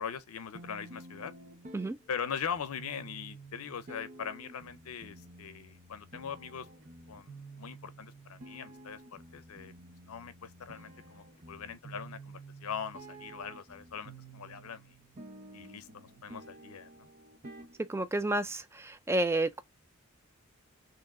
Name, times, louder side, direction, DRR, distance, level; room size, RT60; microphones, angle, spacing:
voice 1, 0.0-1.3 2.1-6.7 7.1-9.7 10.0-14.9 15.5-17.1, left 7 dB, 85° left, 0.5 m, -41 dB
sound 1, 0.5-18.5, right 2 dB, 35° right, 0.7 m, -51 dB
voice 2, 17.8-19.6, right 2 dB, 10° right, 0.3 m, -30 dB
3.0 x 2.9 x 3.5 m
head